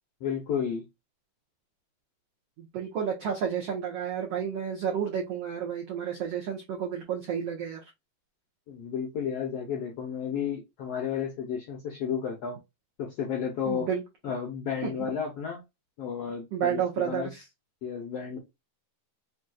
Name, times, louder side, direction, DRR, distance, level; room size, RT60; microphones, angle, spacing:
voice 1, 0.2-0.8 8.7-12.6 13.0-13.9 14.2-15.6 16.0-17.3 17.8-18.4, left 7 dB, 75° left, 1.4 m, -32 dB
voice 2, 2.6-7.8 13.7-14.0 14.8-14.9 16.5-17.4, right 8 dB, 90° right, 1.3 m, -31 dB
6.0 x 2.6 x 2.3 m
omnidirectional pair, 4.2 m